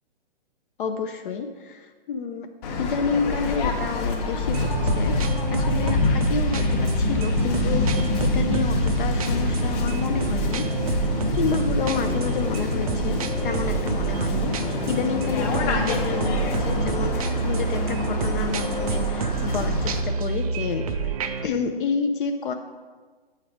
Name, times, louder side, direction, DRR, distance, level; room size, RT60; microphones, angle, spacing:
voice 1, 0.8-2.5 2.8-10.7 11.3-21.1 21.4-22.5, left 5 dB, 55° left, 6 dB, 0.5 m, -29 dB
Waves surf, 2.6-20.0, left 4 dB, 40° left, 1.0 m, -26 dB
sound 1, 4.5-21.5, right 5 dB, 40° right, 0.4 m, -28 dB
7.6 x 3.3 x 4.7 m, 1.4 s
hypercardioid pair, 130°, 31 cm